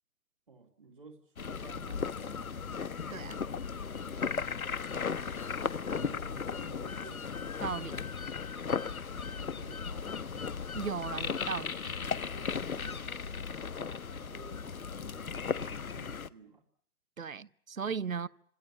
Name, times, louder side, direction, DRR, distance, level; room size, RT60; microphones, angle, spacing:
voice 1, 0.5-2.5 4.8-5.6 5.9-7.4 9.0-10.4 12.3-13.1 14.1-16.6, right 3 dB, 35° right, 2.3 m, -54 dB
sound 1, 1.4-16.3, left 6 dB, 70° left, 1.3 m, -36 dB
sound 2, 5.3-14.0, left 3 dB, 40° left, 2.5 m, -57 dB
voice 2, 7.6-8.0 10.7-12.1 17.2-18.3, right 6 dB, 65° right, 1.1 m, -37 dB
27.0 x 26.5 x 7.2 m
hypercardioid pair, 175°, 44 cm